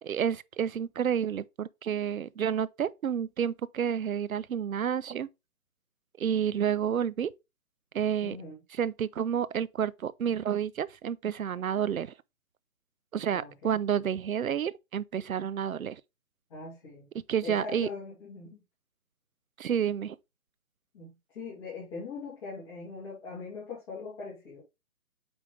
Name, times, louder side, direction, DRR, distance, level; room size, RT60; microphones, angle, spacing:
voice 1, 0.0-5.3 6.2-7.3 7.9-8.4 8.8-12.1 13.1-16.0 17.3-17.9 19.6-20.2, right 8 dB, 70° right, 0.6 m, -30 dB
voice 2, 8.2-8.6 13.3-13.8 16.5-17.1 17.4-18.6 20.9-24.6, left 4 dB, 25° left, 2.9 m, -41 dB
8.6 x 3.5 x 3.2 m
figure-of-eight pair, 155°, 43 cm